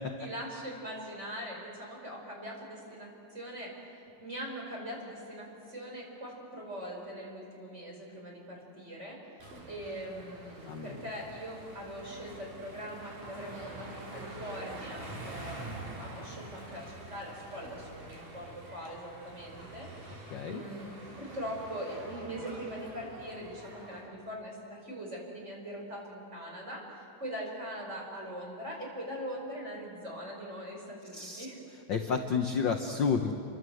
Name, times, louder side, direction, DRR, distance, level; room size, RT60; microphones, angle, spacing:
voice 1, 0.2-9.3 9.7-31.6, equal, 20° right, -1 dB, 5.5 m, -42 dB
sound 1, 9.4-24.0, right 2 dB, 75° right, 6.3 m, -46 dB
voice 2, 10.7-11.0 20.3-20.6 31.1-31.5 31.9-33.4, left 6 dB, 60° left, 5 dB, 1.2 m, -30 dB
28.5 x 24.0 x 7.9 m, 2.9 s
omnidirectional pair, 3.6 m